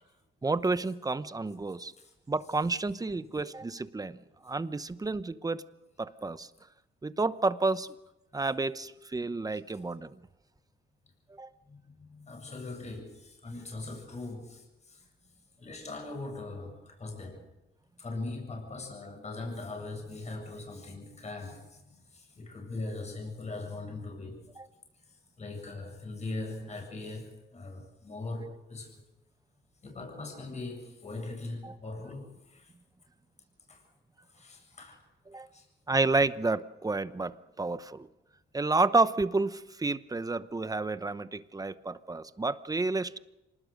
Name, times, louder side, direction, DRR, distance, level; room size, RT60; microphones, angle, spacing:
voice 1, 0.4-1.9 2.3-4.2 4.4-5.6 6.0-6.5 7.0-7.9 8.3-10.1 11.3-11.5 24.6-24.7 31.6-31.7 35.3-35.5 35.9-38.1 38.5-43.2, right 3 dB, 20° right, 14 dB, 0.9 m, -30 dB
voice 2, 11.7-15.1 15.6-17.5 18.0-24.4 25.0-29.0 29.8-32.7 33.7-33.8 34.3-35.0 35.3-35.7, left 2 dB, 35° left, 2 dB, 7.8 m, -41 dB
26.0 x 19.5 x 6.6 m, 0.97 s
cardioid pair, 90°, 20 cm